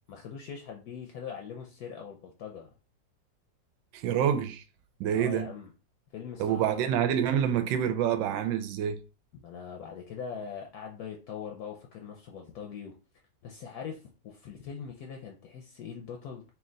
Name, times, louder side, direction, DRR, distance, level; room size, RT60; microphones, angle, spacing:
voice 1, 0.1-2.7 5.1-5.7 6.1-7.1 9.4-12.9 13.4-16.4, left 7 dB, 70° left, 1.0 m, -42 dB
voice 2, 3.9-4.6 5.0-5.5 6.4-9.0, right 9 dB, 90° right, 1.3 m, -27 dB
3.3 x 2.8 x 3.8 m
omnidirectional pair, 2.0 m